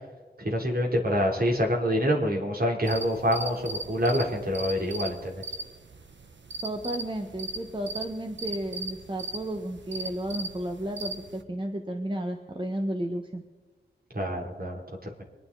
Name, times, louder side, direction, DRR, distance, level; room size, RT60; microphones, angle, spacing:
voice 1, 0.4-5.4 14.1-15.2, equal, 50° right, 0 dB, 3.3 m, -26 dB
sound 1, 2.8-11.4, right 2 dB, 75° right, 1.1 m, -39 dB
voice 2, 6.6-13.4, right 1 dB, 25° right, 3 dB, 1.3 m, -33 dB
25.5 x 9.8 x 4.1 m, 1.3 s
wide cardioid pair, 75°, 19 cm